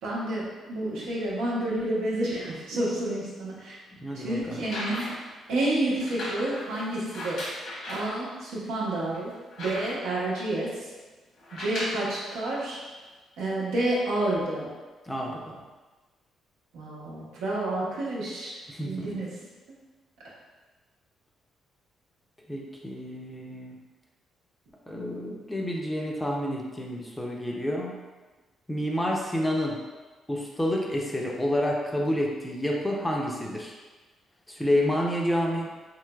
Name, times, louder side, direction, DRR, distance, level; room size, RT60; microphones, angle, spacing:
voice 1, 0.0-3.8 4.1-5.1 5.5-7.5 7.9-9.3 9.6-10.7 11.5-12.8 13.4-14.7 16.7-18.6 18.8-19.3, right 1 dB, 90° right, -6 dB, 0.9 m, -29 dB
voice 2, 4.0-4.6 15.1-15.6 18.7-19.2 22.5-23.8 24.9-28.0 28.7-29.8 30.3-33.8 34.5-35.7, left 1 dB, 10° left, -1 dB, 0.5 m, -29 dB
sound 1, 4.5-5.3 6.0-8.2 8.7-8.8 9.1-10.2 11.4-12.1 13.0-13.1, left 1 dB, 75° left, 1.1 m, -36 dB
3.1 x 3.0 x 2.3 m, 1.3 s
cardioid pair, 90°, 0 cm